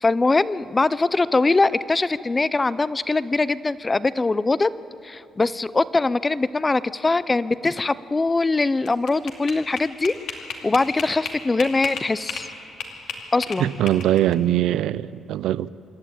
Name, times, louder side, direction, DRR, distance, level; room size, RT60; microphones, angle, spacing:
voice 1, 0.0-4.7 5.0-10.1 10.6-12.5 13.3-13.7, left 3 dB, 25° left, 0.5 m, -22 dB
sound 1, 8.6-12.5 12.8-14.3, left 6 dB, 80° left, 2.3 m, -33 dB
voice 2, 13.6-15.7, right 12 dB, 85° right, 0.4 m, -22 dB
26.0 x 11.5 x 8.7 m
cardioid pair, 90°, 0 cm